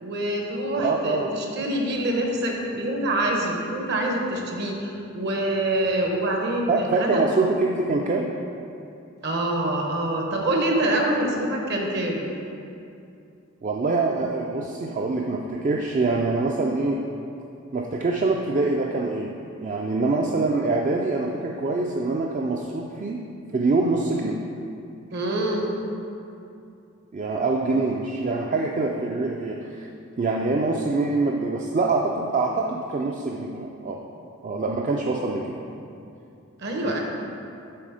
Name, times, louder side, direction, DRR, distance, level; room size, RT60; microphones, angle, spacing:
voice 1, 0.0-7.2 9.2-12.2 25.1-25.7 36.6-37.0, right 1 dB, 55° right, 0 dB, 0.9 m, -25 dB
voice 2, 0.8-1.3 6.7-8.3 13.6-17.0 17.7-23.2 23.5-24.4 27.1-29.9 30.2-34.0 34.4-35.6 36.8-37.0, right 3 dB, 35° right, 0 dB, 0.3 m, -25 dB
7.6 x 3.6 x 4.9 m, 2.6 s
head